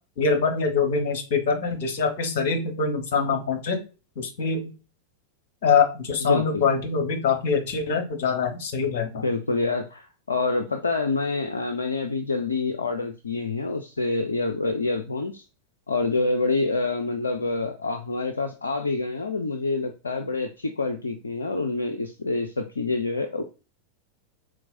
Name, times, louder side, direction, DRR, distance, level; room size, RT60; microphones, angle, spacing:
voice 1, 0.2-3.8 4.2-4.7 5.6-9.2, left 5 dB, 50° left, 5 dB, 1.1 m, -24 dB
voice 2, 6.2-6.6 9.2-15.4 15.9-23.4, left 3 dB, 75° left, 6 dB, 0.4 m, -27 dB
4.5 x 3.7 x 2.5 m, 0.32 s
figure-of-eight pair, 90°, 0 cm